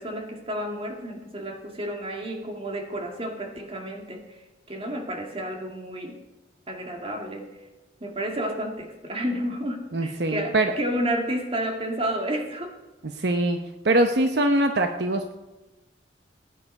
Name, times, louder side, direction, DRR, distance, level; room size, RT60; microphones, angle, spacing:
voice 1, 0.0-6.2 6.7-7.5 8.0-12.8, right 1 dB, 30° right, 3 dB, 2.1 m, -31 dB
voice 2, 9.9-10.7 13.2-13.6 13.8-15.3, right 1 dB, 65° right, 6 dB, 0.9 m, -22 dB
19.0 x 9.4 x 5.5 m, 1.1 s
head